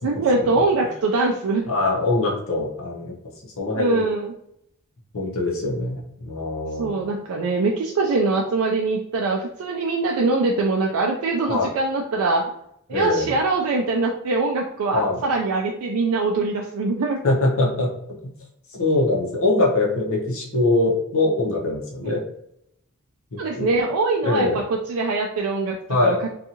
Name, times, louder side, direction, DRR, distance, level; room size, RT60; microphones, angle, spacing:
voice 1, 0.0-1.6 3.7-4.3 6.8-12.4 12.9-17.2 23.4-24.6 24.9-26.2, right 3 dB, 75° right, 1 dB, 0.3 m, -23 dB
voice 2, 1.7-3.1 3.6-4.0 5.1-7.1 11.5-11.7 12.9-13.3 14.9-15.2 17.2-17.9 18.2-18.3 18.7-22.2 23.3-23.7 24.2-24.6 25.9-26.2, left 2 dB, 65° left, -1 dB, 0.8 m, -23 dB
2.6 x 2.3 x 2.7 m, 0.74 s
head